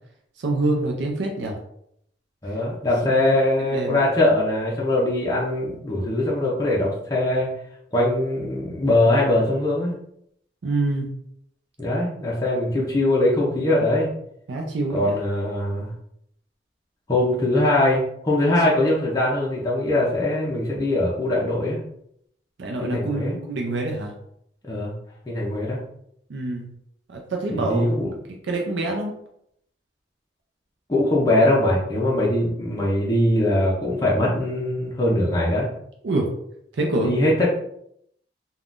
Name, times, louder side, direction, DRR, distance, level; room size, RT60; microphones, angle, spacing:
voice 1, 0.4-1.6 3.0-3.3 3.6-4.0 10.6-11.1 14.5-15.2 22.6-24.1 26.3-26.7 27.1-27.9 28.5-29.1 36.0-36.3 36.8-37.1, right 2 dB, 85° right, 1 dB, 0.5 m, -26 dB
voice 2, 2.4-7.5 7.9-9.9 11.8-14.1 14.9-15.9 17.1-21.8 22.8-23.4 24.6-24.9 25.3-25.8 27.5-28.1 30.9-35.7 37.0-37.5, left 1 dB, 20° left, -5 dB, 0.5 m, -21 dB
3.5 x 2.2 x 2.4 m, 0.73 s
head